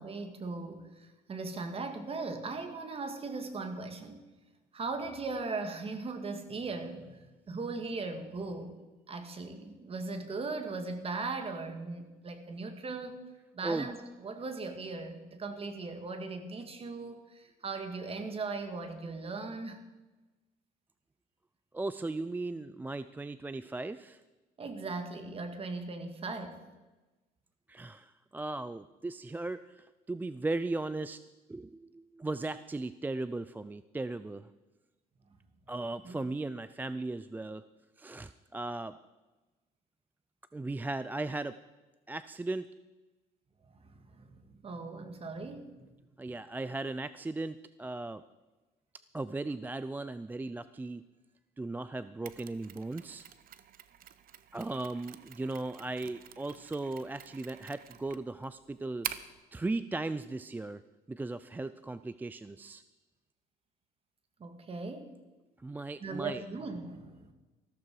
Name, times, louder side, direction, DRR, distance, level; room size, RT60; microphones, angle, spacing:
voice 1, 0.0-4.2 4.7-8.8 9.1-13.2 13.5-19.8 24.6-26.6 36.0-36.2 43.7-45.8 64.4-65.1 66.0-67.3, right 3 dB, 35° right, 7 dB, 2.1 m, -39 dB
voice 2, 21.7-24.2 27.7-31.2 31.5-34.5 35.7-37.6 38.0-39.0 40.5-41.6 42.1-42.7 46.2-48.2 49.1-51.0 51.6-53.2 54.5-59.1 59.5-60.8 61.1-62.8 65.6-66.4, right 2 dB, 10° right, 14 dB, 0.4 m, -37 dB
Mechanisms, 52.3-59.4, right 10 dB, 60° right, 0.8 m, -46 dB
15.0 x 13.5 x 4.8 m, 1.2 s
cardioid pair, 110°, 17 cm